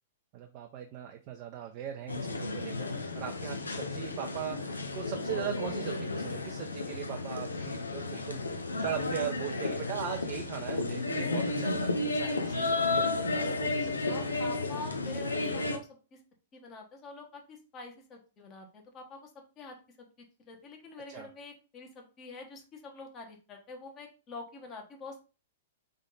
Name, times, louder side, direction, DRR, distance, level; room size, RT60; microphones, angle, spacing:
voice 1, 0.3-8.4 8.8-14.2 21.1-21.3, right 10 dB, 40° right, 4 dB, 0.6 m, -39 dB
sound 1, 2.1-15.8, left 2 dB, 80° left, 0.7 m, -33 dB
voice 2, 14.1-16.2 16.5-19.3 19.6-20.1 20.4-25.2, left 3 dB, 30° left, 2 dB, 1.3 m, -46 dB
3.7 x 3.5 x 3.8 m, 0.33 s
figure-of-eight pair, 105°, 0 cm